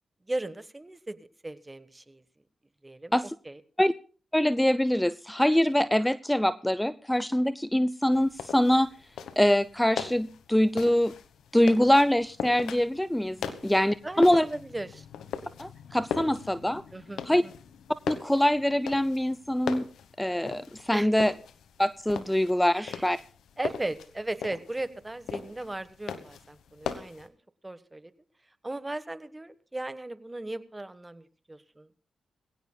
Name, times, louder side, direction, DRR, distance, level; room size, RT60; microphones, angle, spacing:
voice 1, 0.3-2.2 2.8-3.6 14.0-15.1 16.9-17.5 20.9-21.1 22.7-23.1 23.6-27.4 27.6-28.1 28.6-31.9, right 2 dB, 20° right, 13 dB, 1.3 m, -37 dB
voice 2, 4.3-8.9 9.4-11.1 11.5-14.4 15.6-16.8 17.3-17.4 18.1-19.9 20.2-21.3 21.8-23.2, left 1 dB, 10° left, 16 dB, 0.5 m, -24 dB
sound 1, 8.1-27.3, left 7 dB, 85° left, 1.1 m, -39 dB
22.0 x 16.5 x 2.3 m, 0.39 s
supercardioid pair, 45°, 0 cm